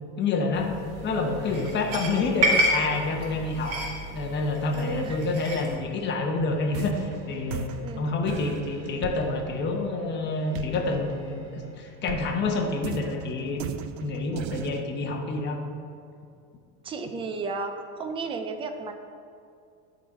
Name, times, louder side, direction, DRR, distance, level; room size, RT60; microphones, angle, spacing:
voice 1, 0.2-0.7 1.0-3.8 4.1-7.7 8.0-15.6, left 3 dB, 30° left, 2 dB, 1.0 m, -28 dB
sound 1, 0.5-5.7, right 1 dB, 35° right, 1.8 m, -30 dB
sound 2, 0.7-12.0, equal, 55° right, 2.0 m, -48 dB
voice 2, 4.7-5.2 7.5-8.0 16.8-18.9, right 4 dB, 15° right, 6 dB, 0.3 m, -34 dB
sound 3, 6.4-11.7 12.1-14.8, right 10 dB, 80° right, 0.6 m, -38 dB
10.5 x 4.0 x 4.9 m, 2.4 s
supercardioid pair, 140°, 38 cm